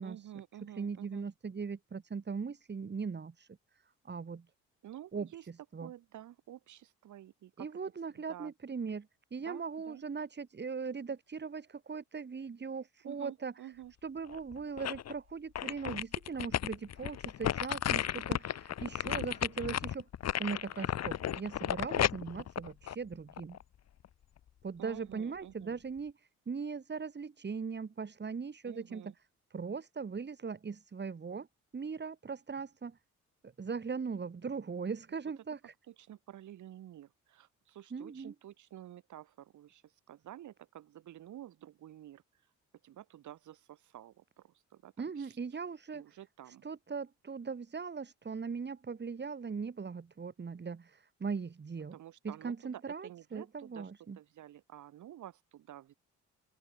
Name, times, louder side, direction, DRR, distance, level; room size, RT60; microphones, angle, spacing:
voice 1, 0.0-1.3 4.8-5.5 5.8-7.7 8.3-8.5 9.4-10.0 13.0-13.9 24.8-25.8 28.7-29.1 35.9-39.8 40.1-42.2 42.8-45.4 45.9-46.6 51.9-53.9 54.2-55.9, right 12 dB, 75° right, 5.4 m, -50 dB
voice 2, 0.6-3.5 4.0-4.5 5.1-5.9 7.6-13.5 14.0-20.1 20.4-23.6 24.6-26.1 26.5-29.1 29.5-31.5 31.7-33.0 33.4-35.7 37.9-38.3 45.0-46.0 46.6-51.9 52.2-54.2, right 5 dB, 35° right, 5.7 m, -39 dB
sound 1, 14.3-15.1 15.6-23.6 24.0-24.1, left 10 dB, 60° left, 1.6 m, -34 dB
open air
cardioid pair, 90°, 30 cm